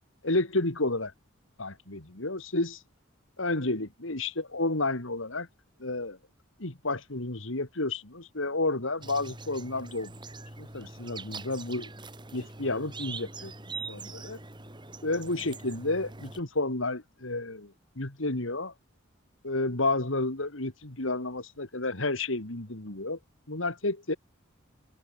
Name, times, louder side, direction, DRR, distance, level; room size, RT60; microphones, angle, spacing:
voice 1, 0.2-1.1 1.6-2.8 3.4-5.5 5.8-6.2 6.6-10.1 10.6-11.9 12.3-13.5 13.9-14.4 15.0-18.7 19.4-23.2 23.5-24.2, left 2 dB, 75° left, 2.8 m, -31 dB
sound 1, 9.0-16.4, right 3 dB, 20° right, 3.7 m, -43 dB
head